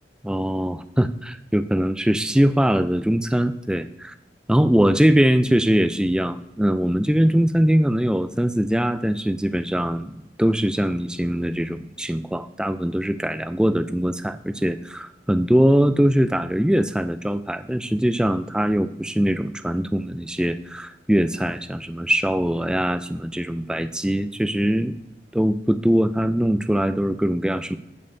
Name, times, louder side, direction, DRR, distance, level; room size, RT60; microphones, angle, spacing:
voice 1, 0.2-4.1 4.5-25.0 25.3-27.8, equal, 5° right, 11 dB, 0.3 m, -22 dB
16.0 x 5.4 x 2.7 m, 0.94 s
head